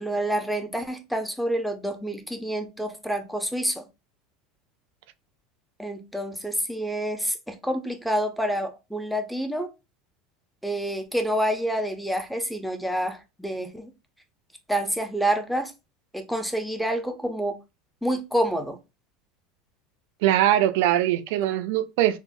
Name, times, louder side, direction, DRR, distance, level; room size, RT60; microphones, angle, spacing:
voice 1, 0.0-3.9 5.8-9.7 10.6-13.9 14.7-15.7 16.1-17.6 18.0-18.8 21.4-21.5, right 1 dB, ahead, 0.5 m, -28 dB
voice 2, 20.2-22.2, right 13 dB, 75° right, 0.3 m, -21 dB
3.7 x 2.0 x 2.4 m
supercardioid pair, 140°, 0 cm